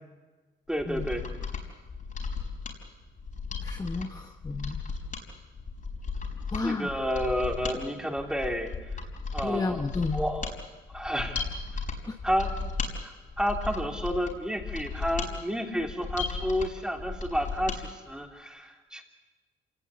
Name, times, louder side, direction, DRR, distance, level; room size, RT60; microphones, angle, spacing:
Mechanisms, 0.7-17.8 18.2-18.3, left 4 dB, 40° left, 5.1 m, -36 dB
voice 1, 0.7-1.3 6.6-8.7 9.3-9.8 10.1-10.5 10.9-11.5 12.2-12.5 13.0-13.1 13.4-19.0, equal, 5° right, 2 dB, 3.3 m, -30 dB
voice 2, 3.6-4.8 6.5-7.0 9.4-10.2 12.1-12.2, left 3 dB, 20° left, 5 dB, 1.2 m, -32 dB
26.5 x 18.5 x 8.5 m, 1.3 s
cardioid pair, 90°, 20 cm